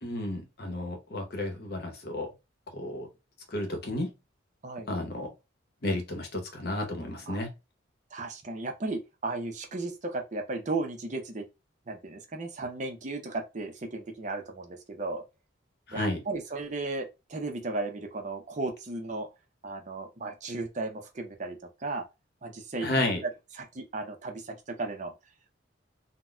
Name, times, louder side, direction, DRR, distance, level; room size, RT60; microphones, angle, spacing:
voice 1, 0.0-2.3 2.7-3.1 3.5-4.1 4.9-5.3 5.8-7.5 15.9-16.2 22.8-23.2, left 1 dB, 55° left, 0.8 m, -32 dB
voice 2, 8.1-11.4 11.9-15.2 15.9-19.3 19.6-22.0 22.4-22.9 23.6-25.1, right 2 dB, 40° right, 0.6 m, -35 dB
3.9 x 2.1 x 2.2 m
head